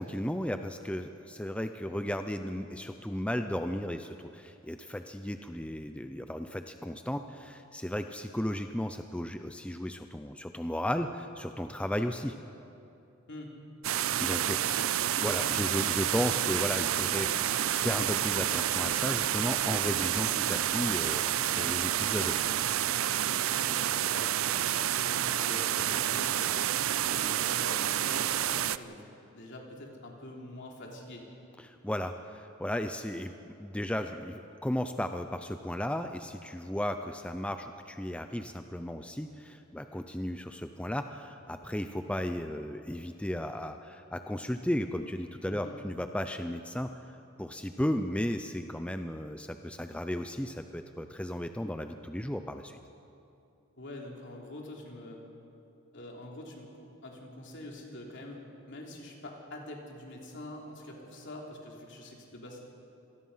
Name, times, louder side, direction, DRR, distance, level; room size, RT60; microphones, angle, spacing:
voice 1, 0.0-12.3 14.2-14.8 15.2-22.4 31.6-33.3 33.6-52.8, left 1 dB, 5° left, 7 dB, 0.6 m, -35 dB
sound 1, 13.8-28.8, right 11 dB, 80° right, 0.5 m, -29 dB
sound 2, 15.2-22.5, left 1 dB, 80° left, 4.1 m, -48 dB
voice 2, 23.5-26.5 27.1-29.0 29.3-31.3 45.5-45.8 53.8-55.2 55.9-58.4 58.7-62.6, left 1 dB, 60° left, -1 dB, 3.5 m, -45 dB
26.0 x 18.5 x 5.7 m, 2.7 s
head